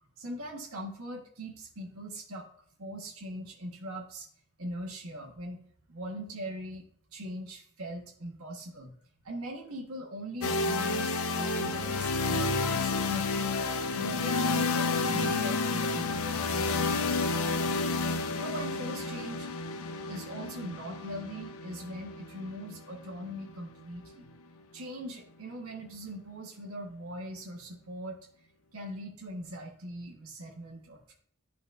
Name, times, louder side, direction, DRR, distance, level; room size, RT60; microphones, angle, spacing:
voice 1, 0.2-2.5 2.8-4.3 4.6-5.6 5.9-6.8 7.1-8.9 9.2-13.5 13.9-18.0 18.3-19.5 20.1-24.3 24.7-28.2 28.7-31.1, equal, 75° right, -1 dB, 1.3 m, -41 dB
sound 1, 10.4-24.3, left 3 dB, 75° left, 0.6 m, -30 dB
11.5 x 4.2 x 2.6 m, 0.63 s
head